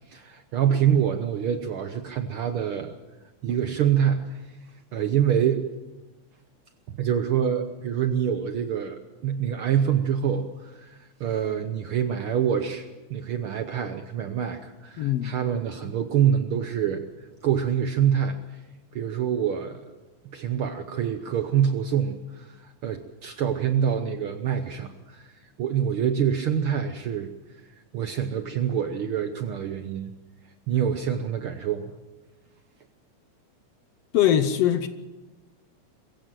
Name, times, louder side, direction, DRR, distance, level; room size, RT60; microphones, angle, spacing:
voice 1, 0.1-2.9 3.4-4.4 4.9-5.6 7.0-17.0 17.4-18.4 18.9-19.9 20.3-25.3 25.6-27.3 27.9-30.1 30.7-31.9, right 8 dB, 65° right, 1.4 m, -26 dB
voice 2, 15.0-15.4 34.1-34.9, left 11 dB, 70° left, 1.7 m, -22 dB
22.5 x 15.5 x 7.6 m
omnidirectional pair, 3.3 m